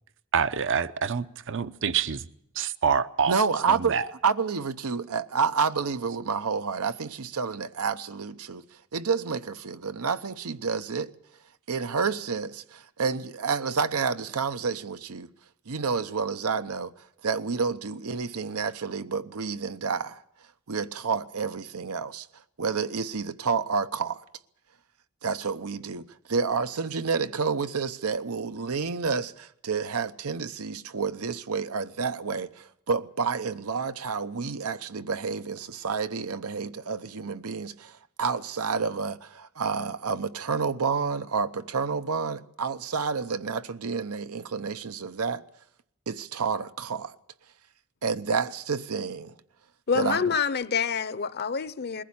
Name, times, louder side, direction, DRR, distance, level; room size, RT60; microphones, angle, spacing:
voice 1, 0.3-2.3 2.5-3.4 3.7-4.1, right 6 dB, 60° right, 0.7 m, -26 dB
voice 2, 3.3-3.9 4.2-8.6 8.9-11.1 11.7-15.3 15.7-16.9 17.2-20.2 20.7-22.3 22.6-24.2 25.2-37.9 38.2-45.4 46.1-47.1 48.0-49.3 49.9-50.2, right 5 dB, 90° right, 0.8 m, -29 dB
voice 3, 49.9-52.0, left 6 dB, 50° left, 0.7 m, -27 dB
21.5 x 15.0 x 8.7 m
head